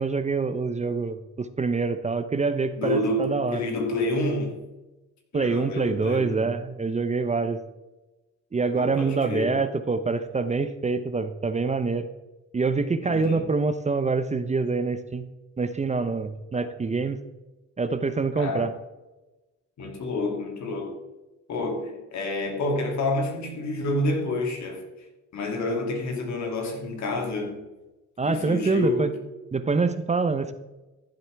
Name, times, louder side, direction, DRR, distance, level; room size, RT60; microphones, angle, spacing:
voice 1, 0.0-3.6 5.3-7.6 8.5-12.1 12.5-15.2 15.6-17.2 17.8-18.7 28.2-29.1 29.5-30.5, right 4 dB, 25° right, 0.7 m, -25 dB
voice 2, 2.8-4.6 5.3-6.6 8.7-9.6 13.0-13.5 16.5-16.6 18.4-18.7 19.8-21.0 21.5-25.1 25.3-27.6 28.2-29.1 30.3-30.4, left 2 dB, 65° left, 2.7 m, -29 dB
14.5 x 7.8 x 3.4 m
cardioid pair, 90°, 30 cm